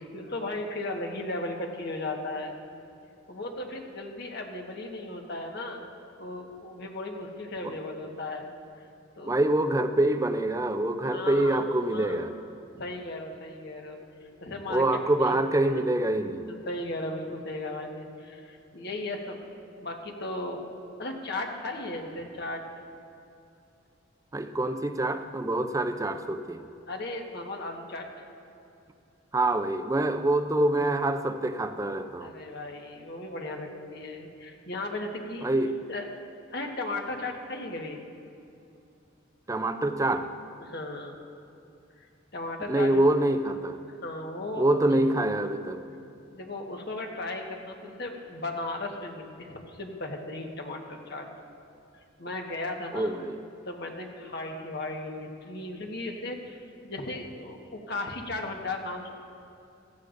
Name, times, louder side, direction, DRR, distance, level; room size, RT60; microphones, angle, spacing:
voice 1, 0.0-2.6 3.3-5.8 6.2-8.5 9.2-9.4 11.0-12.2 12.7-14.0 14.4-15.3 15.6-15.8 16.7-19.4 19.8-20.6 21.0-22.6 26.9-28.1 32.2-35.5 35.9-36.1 36.5-38.0 40.6-41.2 42.3-43.0 44.0-44.6 46.3-51.3 51.9-53.1 53.7-59.1, left 2 dB, 55° left, 1 dB, 1.4 m, -36 dB
voice 2, 9.2-12.3 14.7-16.5 24.3-26.6 29.3-32.3 35.4-35.8 39.5-40.3 42.7-43.8 44.6-45.8 52.9-53.4, right 1 dB, 15° right, 8 dB, 0.4 m, -25 dB
16.0 x 14.5 x 2.6 m, 2.6 s
head